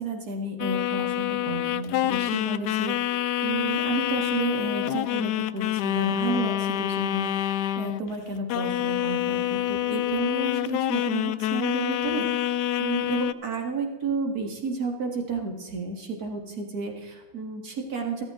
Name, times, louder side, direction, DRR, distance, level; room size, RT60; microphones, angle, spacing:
voice 1, 0.0-3.0 3.4-18.2, right 3 dB, 50° right, 2 dB, 2.4 m, -32 dB
sound 1, 0.6-8.1 8.5-13.3, left 12 dB, 75° left, 0.9 m, -27 dB
15.0 x 13.0 x 3.8 m, 1.2 s
omnidirectional pair, 2.2 m